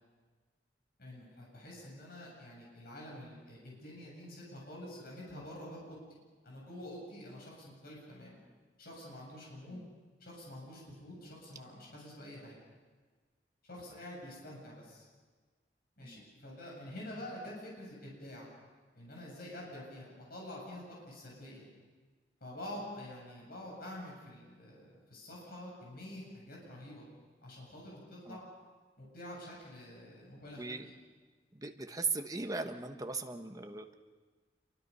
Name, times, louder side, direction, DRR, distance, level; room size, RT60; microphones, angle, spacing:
voice 1, 1.0-6.2 6.4-8.4 8.8-9.8 10.2-12.5 13.7-15.1 16.0-18.5 18.9-21.7 22.4-27.0 27.4-28.5 29.0-30.9, left 1 dB, 55° left, -3 dB, 8.0 m, -47 dB
voice 2, 30.5-30.9 31.5-33.9, right 4 dB, 20° right, 5 dB, 1.2 m, -38 dB
27.0 x 23.5 x 5.6 m, 1.4 s
head